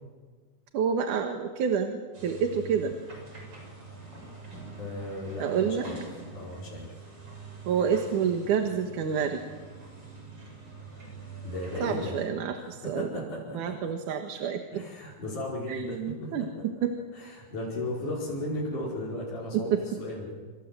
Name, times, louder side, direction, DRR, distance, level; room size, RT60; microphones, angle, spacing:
voice 1, 0.7-2.9 5.4-5.9 7.7-9.4 11.8-13.1 13.5-14.6 15.7-16.9 19.5-19.8, right 7 dB, 85° right, 5 dB, 3.0 m, -28 dB
sound 1, 2.1-12.3, right 3 dB, 35° right, 7.5 m, -44 dB
voice 2, 4.7-6.0 6.3-6.9 11.4-12.2 12.5-13.7 14.7-16.3 17.1-20.4, left 1 dB, 80° left, -6 dB, 6.8 m, -35 dB
27.5 x 27.0 x 7.7 m, 1.5 s
omnidirectional pair, 3.5 m